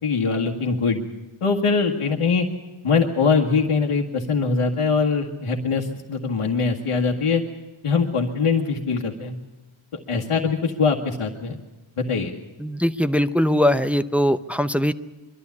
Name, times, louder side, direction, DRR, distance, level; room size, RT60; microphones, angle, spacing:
voice 1, 0.0-1.0 1.4-2.5 2.8-7.4 7.8-9.4 10.1-11.6 12.0-12.3, left 4 dB, 90° left, -1 dB, 1.8 m, -22 dB
voice 2, 12.6-14.9, equal, 5° right, 10 dB, 0.6 m, -21 dB
23.5 x 13.0 x 9.6 m, 1.1 s
wide cardioid pair, 110°, 50 cm